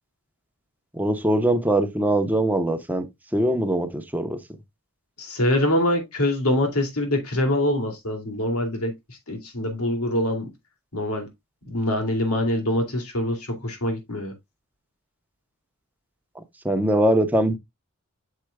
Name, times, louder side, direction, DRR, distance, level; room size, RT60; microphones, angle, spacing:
voice 1, 0.9-3.1 3.3-4.4 16.6-17.6, right 1 dB, 10° right, 0.9 m, -22 dB
voice 2, 5.2-8.9 9.3-10.5 10.9-11.3 11.7-14.3, left 1 dB, 85° left, 2.5 m, -24 dB
8.2 x 6.6 x 2.2 m
head